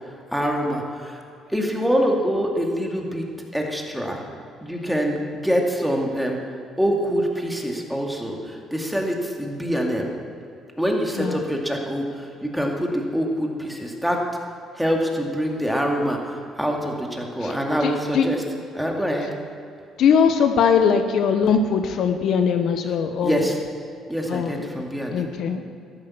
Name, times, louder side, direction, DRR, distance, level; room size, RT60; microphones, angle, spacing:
voice 1, 0.3-1.2 1.5-3.2 3.5-4.2 4.6-6.4 6.8-10.1 10.8-14.2 14.7-18.4 18.7-19.3 23.2-23.6 24.1-25.3, equal, ahead, 0 dB, 2.3 m, -25 dB
voice 2, 17.8-18.3 20.0-23.4 24.3-24.7 25.1-25.7, left 6 dB, 65° left, 8 dB, 1.0 m, -21 dB
14.0 x 11.0 x 7.2 m, 2.5 s
cardioid pair, 115°, 0 cm